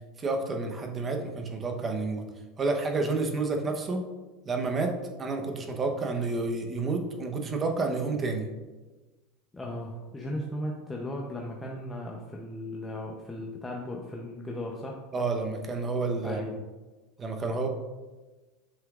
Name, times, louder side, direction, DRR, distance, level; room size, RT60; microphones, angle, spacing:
voice 1, 0.2-2.2 2.6-4.0 4.5-4.9 5.2-8.5 15.1-16.5 17.2-17.7, right 3 dB, 20° right, 4 dB, 0.8 m, -29 dB
voice 2, 9.5-15.0 16.2-16.6, left 1 dB, 10° left, -1 dB, 0.6 m, -36 dB
8.0 x 5.6 x 2.4 m, 1.2 s
supercardioid pair, 145°, 0 cm